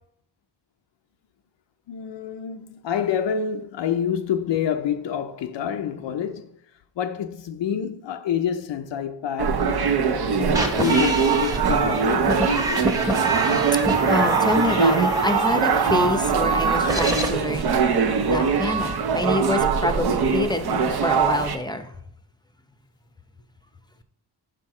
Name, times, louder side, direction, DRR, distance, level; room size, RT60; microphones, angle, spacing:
voice 1, 1.9-6.5 7.0-12.9, left 8 dB, 85° left, 0.6 m, -28 dB
sound 1, 9.4-21.6, right 6 dB, 60° right, 0.7 m, -22 dB
sound 2, 10.5-17.3, right 1 dB, 10° right, 1.0 m, -27 dB
voice 2, 13.1-13.7 14.1-21.9, left 2 dB, 10° left, 0.6 m, -27 dB
6.3 x 4.5 x 4.8 m
wide cardioid pair, 100°, 42 cm